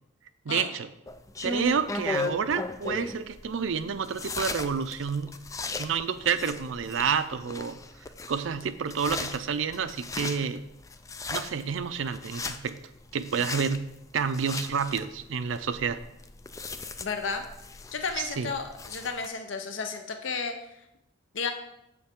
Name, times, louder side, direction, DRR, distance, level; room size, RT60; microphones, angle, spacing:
voice 1, 0.5-0.9 1.4-5.3 5.8-7.8 8.3-10.6 11.3-12.8 13.1-13.9 14.1-16.0 18.2-18.5, right 6 dB, 80° right, 12 dB, 0.5 m, -29 dB
sound 1, 1.1-19.3, left 3 dB, 15° left, 0.3 m, -37 dB
voice 2, 17.0-17.4 17.9-20.5 21.3-21.5, left 5 dB, 75° left, 6 dB, 0.7 m, -32 dB
7.7 x 6.8 x 3.7 m, 0.86 s
head